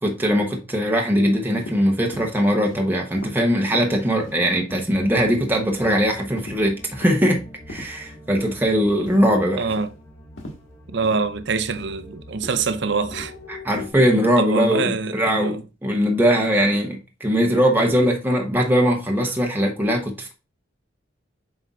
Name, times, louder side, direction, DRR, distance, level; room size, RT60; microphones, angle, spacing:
voice 1, 0.0-7.4 7.7-9.7 13.5-20.3, equal, 10° right, 0.8 m, -20 dB
sound 1, 1.6-1.8 2.1-2.3 2.6-2.8 3.2-3.3 3.7-3.8 4.2-4.4 4.7-4.9 5.2-5.4 5.8-6.0 6.4-6.6 7.0-7.2 7.7-7.9 8.4-8.6 9.1-9.3 9.7-9.9 10.4-10.6 11.0-11.2 11.7-11.9 12.4-12.7 13.1-13.3 13.7-13.9, left 1 dB, 85° left, 1.5 m, -37 dB
sound 2, 4.9-13.9, left 1 dB, 20° left, 4.0 m, -44 dB
voice 2, 9.6-9.9 10.9-13.3 14.4-15.6, right 4 dB, 65° right, 0.6 m, -24 dB
7.6 x 5.2 x 2.4 m
head